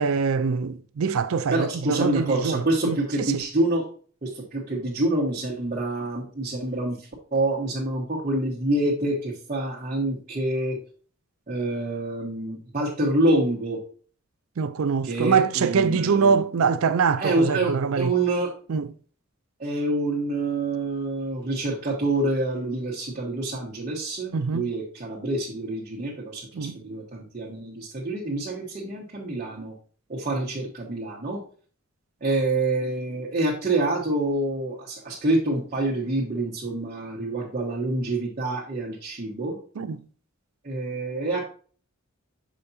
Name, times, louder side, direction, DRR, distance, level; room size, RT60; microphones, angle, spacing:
voice 1, 0.0-3.3 14.6-18.1 18.7-18.9 24.3-24.7 26.5-26.8 39.8-40.0, right 5 dB, 70° right, 0.4 m, -24 dB
voice 2, 1.5-3.8 4.2-10.8 11.5-13.8 15.0-16.4 17.2-18.5 19.6-29.7 30.1-31.4 32.2-39.6 40.6-41.4, right 2 dB, 35° right, 1.1 m, -27 dB
6.9 x 5.0 x 2.7 m
head